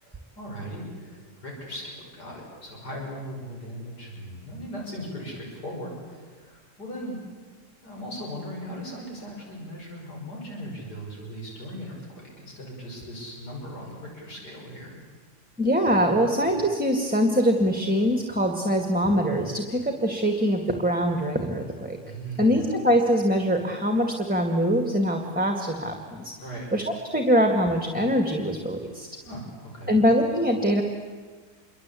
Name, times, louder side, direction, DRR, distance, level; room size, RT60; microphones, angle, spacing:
voice 1, 0.0-7.2 7.8-15.0 22.0-22.6 26.4-26.7 29.2-30.0, equal, 75° left, -1 dB, 6.5 m, -38 dB
voice 2, 15.6-22.0 22.4-26.3 26.7-26.8 27.1-29.1 29.9-30.8, equal, 5° right, 4 dB, 1.9 m, -23 dB
27.5 x 23.5 x 8.5 m, 1.5 s
omnidirectional pair, 1.8 m